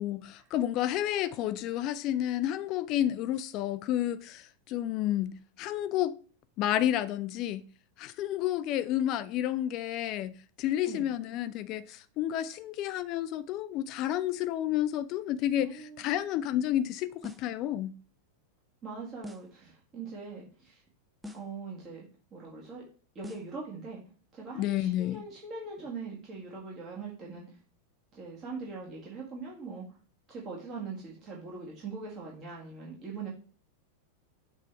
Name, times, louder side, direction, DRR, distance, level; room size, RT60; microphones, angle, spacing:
voice 1, 0.0-6.1 6.6-7.6 8.0-17.9 24.6-25.2, left 12 dB, 40° left, 0.4 m, -30 dB
voice 2, 15.6-16.2 18.8-20.8 21.3-22.1 22.3-22.8 23.2-24.0 24.3-27.6 28.1-30.0 30.3-33.3, right 4 dB, 30° right, 1.9 m, -41 dB
sound 1, 17.2-17.6 19.2-19.6 21.2-21.6 23.2-23.6, left 3 dB, 5° right, 0.6 m, -45 dB
7.2 x 3.4 x 4.6 m
figure-of-eight pair, 90°, 0 cm